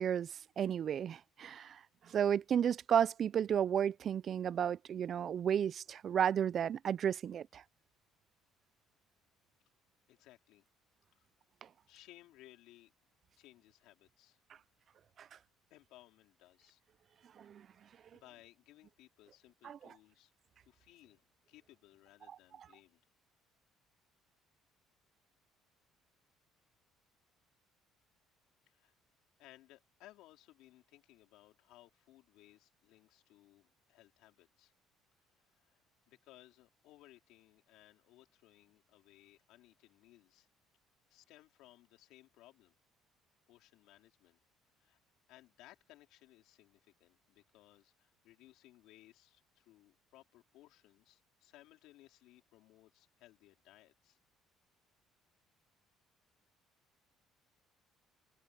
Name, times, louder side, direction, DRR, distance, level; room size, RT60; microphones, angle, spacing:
voice 1, 0.0-1.8 2.1-7.6 15.2-15.3 17.4-17.6 19.6-19.8, right 8 dB, 45° right, 0.4 m, -33 dB
voice 2, 10.1-10.6 11.2-11.3 11.9-12.9 13.4-14.4 15.7-16.8 17.6-17.7 18.1-20.3 20.7-23.0 28.7-28.9 29.4-34.7 35.3-40.5 41.1-42.8 43.5-44.4 44.8-45.0 45.3-54.2, left 16 dB, 80° left, 4.3 m, -62 dB
cardioid pair, 115°, 0 cm